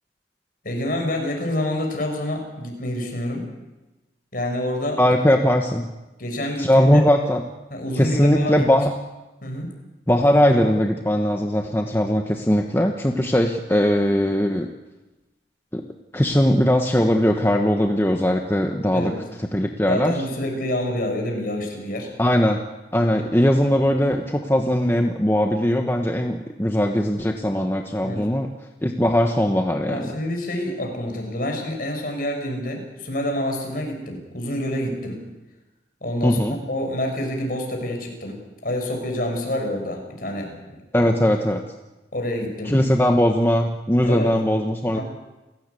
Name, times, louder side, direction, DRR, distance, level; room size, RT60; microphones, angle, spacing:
voice 1, 0.6-3.5 4.3-5.0 6.2-7.1 7.7-8.7 9.4-9.7 18.9-19.2 19.9-22.1 28.0-28.3 29.8-35.2 36.0-40.6 41.0-41.1 42.1-42.8 44.0-44.3 44.9-45.0, left 1 dB, 50° left, 3 dB, 6.7 m, -27 dB
voice 2, 5.0-5.9 6.6-7.4 7.9-8.9 10.1-14.7 15.7-15.9 16.1-19.1 19.4-20.2 22.2-22.6 22.9-28.5 28.8-30.1 36.2-36.6 40.9-41.6 42.7-45.0, equal, 15° left, 3 dB, 1.2 m, -20 dB
29.5 x 17.0 x 8.5 m, 1.1 s
head